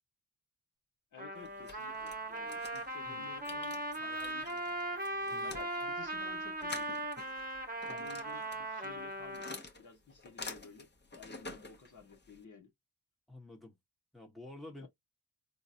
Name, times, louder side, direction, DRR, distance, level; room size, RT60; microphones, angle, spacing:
voice 1, 1.1-4.6 5.2-7.0 7.9-10.9 11.1-12.7 14.8-14.9, left 5 dB, 50° left, 1.2 m, -54 dB
Trumpet, 1.2-9.6, right 1 dB, 20° right, 1.0 m, -39 dB
sound 1, 1.4-12.4, left 3 dB, 25° left, 0.9 m, -50 dB
voice 2, 7.9-8.2 13.3-13.7 14.1-14.9, left 2 dB, ahead, 1.1 m, -50 dB
3.7 x 2.1 x 2.6 m
supercardioid pair, 45°, 40 cm